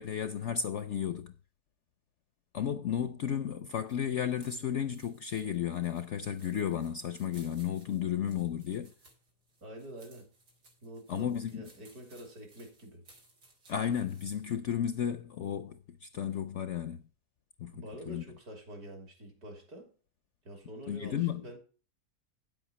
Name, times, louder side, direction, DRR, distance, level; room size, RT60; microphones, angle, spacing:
voice 1, 0.0-1.3 2.5-8.9 11.1-11.6 13.7-17.0 17.6-18.2 20.9-21.4, left 9 dB, 65° left, 0.7 m, -33 dB
sound 1, 3.7-14.5, right 2 dB, 85° right, 2.8 m, -62 dB
voice 2, 9.6-10.3 10.8-13.0 17.7-19.9 20.5-21.6, equal, 65° right, 3.4 m, -47 dB
9.4 x 7.9 x 4.1 m
omnidirectional pair, 1.7 m